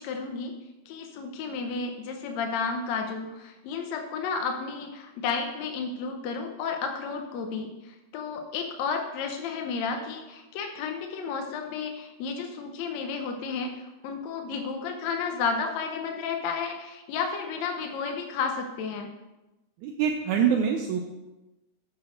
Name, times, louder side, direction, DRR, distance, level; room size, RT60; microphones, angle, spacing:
voice 1, 0.0-19.1, left 5 dB, 70° left, 4 dB, 1.9 m, -32 dB
voice 2, 19.8-21.1, right 7 dB, 75° right, 3 dB, 2.0 m, -25 dB
7.5 x 6.2 x 6.3 m, 1.0 s
omnidirectional pair, 3.6 m